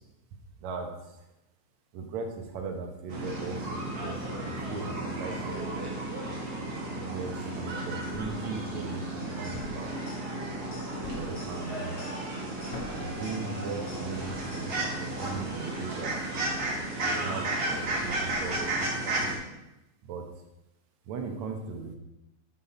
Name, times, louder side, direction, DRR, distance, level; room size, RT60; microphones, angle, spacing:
voice 1, 0.6-1.3 1.9-5.7 7.0-9.9 11.0-12.1 12.9-16.2 17.0-19.3 20.0-20.3 21.1-22.0, right 4 dB, 75° right, 3 dB, 2.3 m, -38 dB
sound 1, 3.1-19.3, right 2 dB, 50° right, 2.1 m, -33 dB
Thump thud, 8.1-8.5 9.5-9.9 11.0-11.4 12.7-13.1, left 4 dB, 60° left, 1.9 m, -41 dB
sound 2, 9.2-15.3, equal, 35° left, 2.6 m, -44 dB
8.4 x 5.6 x 4.2 m, 0.91 s
omnidirectional pair, 3.3 m